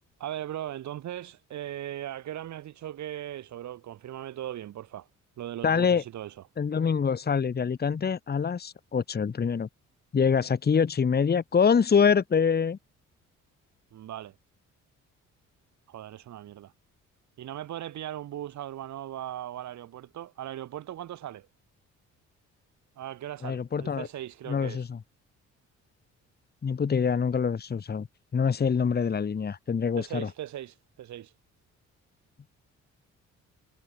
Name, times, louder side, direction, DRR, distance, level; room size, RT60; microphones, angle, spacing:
voice 1, 0.2-5.1 5.4-6.5 13.9-14.3 15.9-16.7 17.4-21.5 23.0-24.9 29.9-31.3, right 12 dB, 70° right, 1.9 m, -38 dB
voice 2, 5.6-6.0 6.6-9.7 10.1-12.8 23.4-24.1 24.5-25.0 26.6-28.1 28.3-30.3, left 6 dB, 30° left, 1.3 m, -25 dB
cardioid pair, 90°, 30 cm